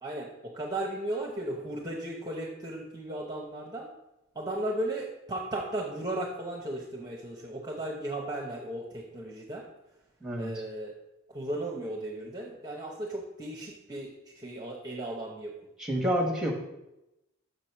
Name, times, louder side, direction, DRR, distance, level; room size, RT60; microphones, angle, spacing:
voice 1, 0.0-3.9 4.3-9.7 10.4-10.9 11.3-15.5, right 1 dB, 20° right, -1 dB, 0.9 m, -35 dB
voice 2, 10.2-10.6 15.8-16.5, equal, 5° right, 1 dB, 1.3 m, -28 dB
6.7 x 4.8 x 5.8 m, 0.91 s
head